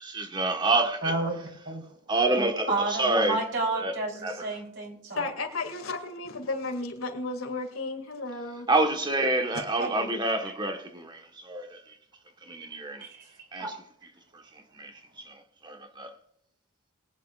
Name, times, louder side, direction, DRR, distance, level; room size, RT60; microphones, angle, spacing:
voice 1, 0.1-1.2 2.1-3.4 3.7-4.5 8.7-11.9 12.4-13.1 13.5-13.7 14.3-16.1, right 2 dB, 20° right, 1.3 m, -28 dB
voice 2, 1.0-1.3 1.7-1.8 2.7-5.3 9.8-10.5 13.0-13.3 13.6-13.8, right 2 dB, 55° right, 3.6 m, -31 dB
voice 3, 5.1-8.7 9.5-9.6, left 3 dB, 80° left, 2.3 m, -33 dB
22.0 x 9.3 x 2.4 m
head